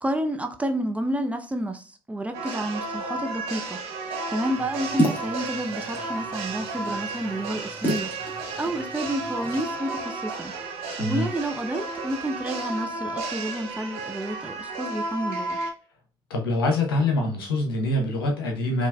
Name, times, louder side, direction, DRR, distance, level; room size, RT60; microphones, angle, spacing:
voice 1, 0.0-8.1 8.6-10.5 11.0-15.6, right 1 dB, 10° right, 0.5 m, -30 dB
sound 1, 2.3-15.7, right 3 dB, 60° right, 0.8 m, -33 dB
sound 2, 4.5-9.6, right 1 dB, 15° left, 1.8 m, -32 dB
voice 2, 11.0-11.3 16.3-18.9, left 2 dB, 75° left, 0.9 m, -24 dB
4.4 x 3.0 x 2.2 m
figure-of-eight pair, 55°, 12 cm